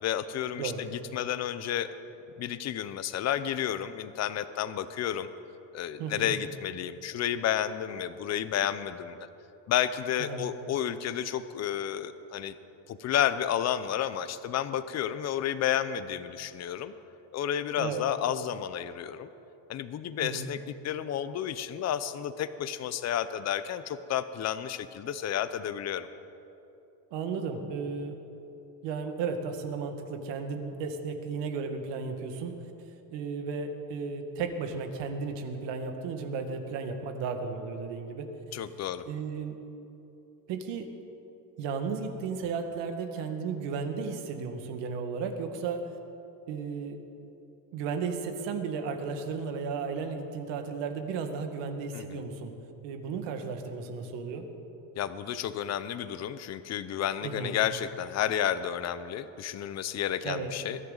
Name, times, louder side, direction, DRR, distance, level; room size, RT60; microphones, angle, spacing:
voice 1, 0.0-1.9 2.4-5.3 5.7-9.3 9.7-12.6 12.9-16.9 17.3-19.3 19.7-20.6 20.8-26.1 38.5-39.0 51.9-52.2 55.0-60.8, left 10 dB, 35° left, 13 dB, 0.7 m, -31 dB
voice 2, 6.0-6.4 10.2-10.5 17.8-18.0 20.2-20.5 27.1-28.2 28.8-32.6 33.1-38.3 39.1-39.5 40.5-40.9 41.6-45.9 46.5-47.0 47.7-52.5 52.8-54.5 57.2-57.6 60.2-60.5, right 5 dB, 70° right, 5 dB, 1.9 m, -34 dB
22.0 x 14.0 x 4.0 m, 2.9 s
cardioid pair, 140°, 44 cm